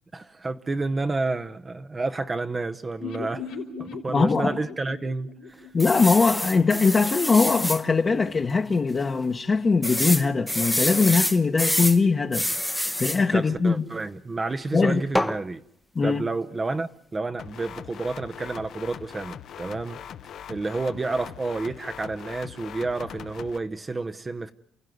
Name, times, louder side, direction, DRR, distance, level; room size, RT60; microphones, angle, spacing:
voice 1, 0.1-5.7 13.3-15.6 16.0-20.0 20.5-24.5, right 3 dB, 25° right, 0.9 m, -30 dB
sound 1, 3.0-6.9 7.1-7.2 7.5-7.6, left 5 dB, 80° left, 4.0 m, -38 dB
voice 2, 4.1-4.5 5.7-12.5 13.0-13.7 14.7-15.0 15.9-16.2, left 4 dB, 30° left, 1.2 m, -21 dB
sound 2, 5.8-7.8 8.3-8.5 8.7-8.8 9.8-12.0 12.3-13.2 15.1-15.4, left 1 dB, 5° left, 0.9 m, -26 dB
sound 3, 17.4-23.6, left 9 dB, 65° left, 1.0 m, -41 dB
29.0 x 15.5 x 9.4 m
cardioid pair, 100°, 0 cm